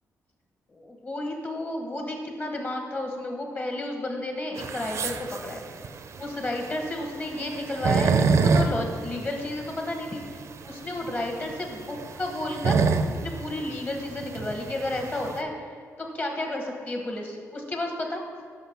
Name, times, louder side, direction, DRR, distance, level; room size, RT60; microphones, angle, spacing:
voice 1, 0.7-5.6 6.2-10.2 10.6-12.8 13.2-15.5 16.0-18.2, left 1 dB, 30° left, 2 dB, 1.1 m, -32 dB
sound 1, 4.6-15.4, right 4 dB, 55° right, 0.4 m, -27 dB
5.9 x 5.4 x 4.3 m, 2.1 s
cardioid pair, 95°, 6 cm